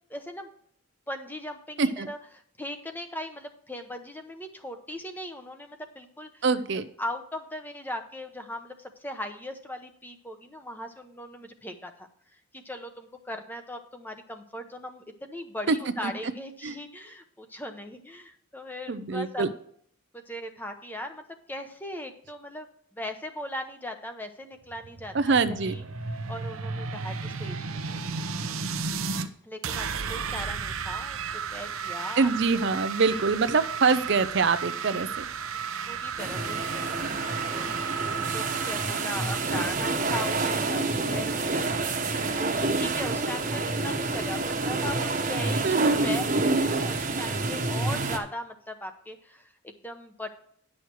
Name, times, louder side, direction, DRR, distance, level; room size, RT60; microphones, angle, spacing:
voice 1, 0.1-0.5 1.1-2.2 2.6-6.4 6.7-19.5 20.1-22.7 22.9-25.9 26.3-27.6 27.9-28.6 29.4-32.8 35.5-37.0 37.4-37.7 38.3-41.8 42.3-45.8 46.0-46.2 46.6-50.4, left 1 dB, 10° left, 6 dB, 0.8 m, -39 dB
voice 2, 6.4-6.9 15.7-15.8 16.0-16.1 16.6-16.7 18.9-19.5 25.1-25.7 32.2-35.2 45.6-46.0, right 4 dB, 55° right, 11 dB, 0.5 m, -24 dB
sound 1, 24.6-29.3 29.6-41.2, right 5 dB, 80° right, 0.8 m, -34 dB
sound 2, 36.2-48.2, right 3 dB, 40° right, 1.2 m, -28 dB
10.5 x 6.4 x 4.5 m, 0.64 s
head